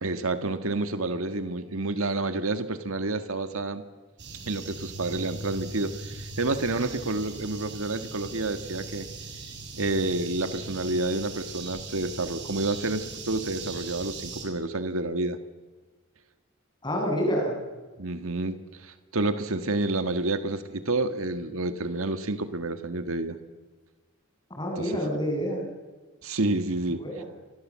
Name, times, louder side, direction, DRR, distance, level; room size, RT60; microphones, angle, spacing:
voice 1, 0.0-3.8 4.5-9.1 9.7-15.4 18.0-23.4 24.8-25.0 26.2-27.0, right 2 dB, 90° right, 9 dB, 1.7 m, -29 dB
sound 1, 4.2-14.4, right 3 dB, 55° right, 7.1 m, -40 dB
voice 2, 16.8-17.5 24.6-25.6 27.0-27.2, equal, 20° left, 1 dB, 7.7 m, -27 dB
29.5 x 26.0 x 7.6 m, 1.3 s
head